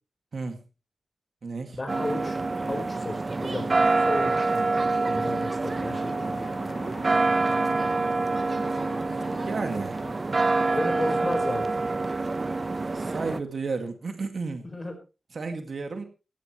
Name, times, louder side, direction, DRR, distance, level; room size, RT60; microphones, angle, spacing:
voice 1, 0.3-0.6 1.4-1.8 9.5-10.0 12.9-14.6 15.3-16.0, right 4 dB, 60° right, 6 dB, 2.2 m, -32 dB
voice 2, 1.8-2.4 2.6-3.8 4.1-4.8 5.1-6.2 10.7-11.8 14.7-14.9, left 2 dB, 25° left, 6 dB, 4.8 m, -33 dB
sound 1, 1.9-13.4, right 3 dB, 35° right, 0.9 m, -26 dB
sound 2, 5.6-11.4, left 3 dB, 85° left, 6.0 m, -44 dB
17.0 x 15.0 x 3.2 m, 0.31 s
wide cardioid pair, 105°, 0 cm